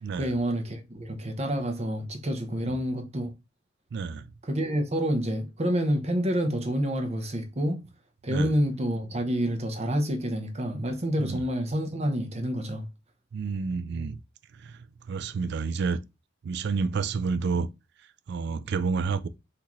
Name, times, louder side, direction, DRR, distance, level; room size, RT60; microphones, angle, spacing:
voice 1, 0.2-3.3 4.4-7.8 8.2-12.9, equal, 35° right, 0.8 m, -28 dB
voice 2, 3.9-4.3 8.3-8.5 11.2-11.4 13.3-14.2 14.6-14.8 15.1-16.0 16.4-17.7 18.3-19.3, right 5 dB, 55° right, 0.4 m, -29 dB
5.9 x 2.8 x 3.0 m
head